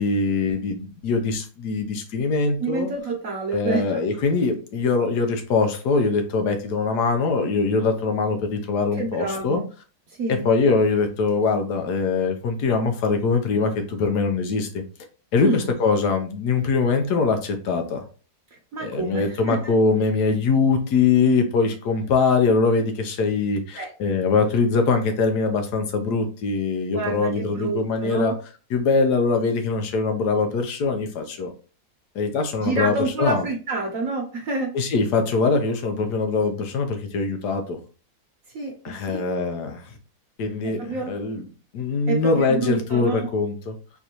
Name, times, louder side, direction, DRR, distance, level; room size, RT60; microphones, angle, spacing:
voice 1, 0.0-2.9 3.5-9.6 10.3-14.8 15.3-18.0 18.8-28.3 28.7-31.5 32.1-33.4 34.7-37.8 38.8-39.9 40.4-41.4 41.7-43.7, left 4 dB, 80° left, 6 dB, 1.3 m, -22 dB
voice 2, 2.6-4.0 9.0-9.6 10.2-10.5 15.4-15.6 18.7-19.7 23.8-23.9 26.9-28.3 32.6-34.7 38.5-39.2 40.6-41.1 42.1-43.3, right 3 dB, 60° right, 0 dB, 1.1 m, -28 dB
4.4 x 2.6 x 2.9 m, 0.36 s
omnidirectional pair, 1.7 m